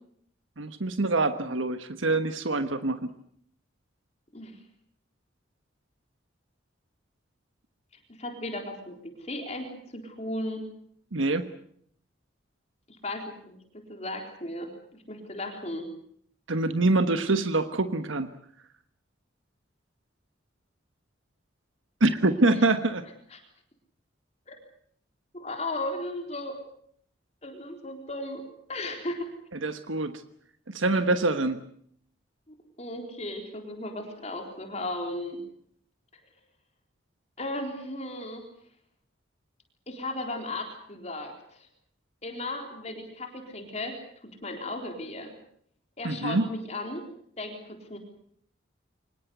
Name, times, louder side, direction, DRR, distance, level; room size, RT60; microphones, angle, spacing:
voice 1, 0.6-3.0 11.1-11.5 16.5-18.3 22.0-23.0 29.6-30.1 30.7-31.6 46.0-46.4, right 2 dB, 90° right, 10 dB, 1.3 m, -25 dB
voice 2, 8.2-10.6 13.0-14.7 15.1-15.9 23.3-23.4 24.5-24.6 25.3-26.6 27.4-28.4 28.7-29.3 30.9-31.0 32.5-35.4 37.4-38.4 39.9-41.7 42.2-44.0 44.2-45.3 46.0-47.1 47.4-48.0, left 1 dB, 35° left, 4 dB, 3.8 m, -36 dB
25.0 x 20.5 x 8.1 m, 0.65 s
head